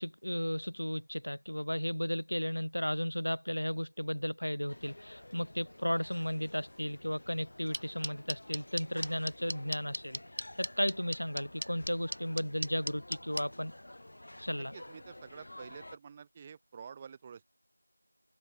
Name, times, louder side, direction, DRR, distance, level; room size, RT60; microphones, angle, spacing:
voice 1, 0.0-10.2 10.6-13.7 14.4-14.7, equal, 65° left, 2.1 m, -34 dB
sound 1, 4.7-16.0, left 1 dB, 20° left, 2.1 m, -51 dB
sound 2, 7.7-13.4, right 1 dB, 40° right, 1.8 m, -35 dB
voice 2, 14.5-17.4, right 6 dB, 5° right, 1.5 m, -49 dB
open air
figure-of-eight pair, 180°, 0 cm